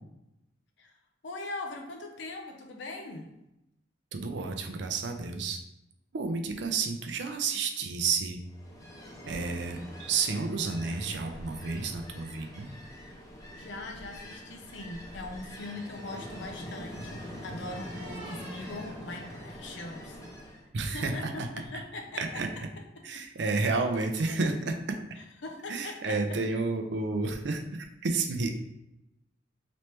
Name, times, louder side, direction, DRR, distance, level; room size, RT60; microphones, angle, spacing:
voice 1, 1.2-3.3 13.6-20.2 20.8-22.4 25.4-26.2, left 2 dB, 70° left, 3 dB, 0.6 m, -41 dB
voice 2, 4.1-5.6 6.1-8.4 9.3-12.7 20.7-21.5 21.7-21.8 22.2-22.7 23.0-24.9 25.7-28.5, right 4 dB, 65° right, 5 dB, 0.5 m, -31 dB
Ocean, 8.5-20.7, equal, 20° left, 0.7 m, -44 dB
sound 1, 15.0-20.1, right 1 dB, 25° right, 1.0 m, -53 dB
3.2 x 3.1 x 3.0 m, 0.88 s
head